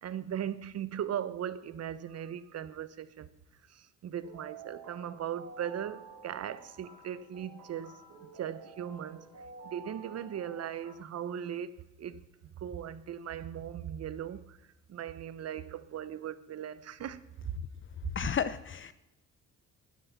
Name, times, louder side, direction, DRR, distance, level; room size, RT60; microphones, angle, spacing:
voice 1, 0.0-3.3 3.7-8.0 8.3-9.3 9.6-12.2 12.6-14.6 14.9-17.6, right 9 dB, 55° right, 0.9 m, -38 dB
sound 1, 4.2-10.9, right 4 dB, 85° right, 2.7 m, -50 dB
voice 2, 18.1-18.9, left 8 dB, 40° left, 0.6 m, -32 dB
9.9 x 9.5 x 7.0 m
cardioid pair, 90°, 30 cm